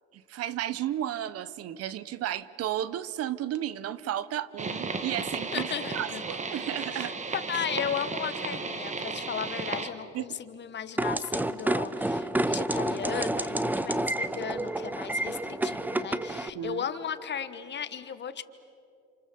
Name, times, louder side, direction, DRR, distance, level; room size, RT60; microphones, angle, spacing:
voice 1, 0.1-7.1 10.1-10.3 16.5-16.8, right 12 dB, 55° right, 17 dB, 1.0 m, -33 dB
sound 1, 4.6-9.9, right 4 dB, 25° right, 1.8 m, -34 dB
voice 2, 5.5-6.2 6.9-18.4, left 8 dB, 35° left, 12 dB, 1.4 m, -36 dB
sound 2, 11.0-16.5, right 1 dB, 5° right, 0.8 m, -29 dB
28.5 x 27.0 x 7.0 m, 2.7 s
supercardioid pair, 100°, 30 cm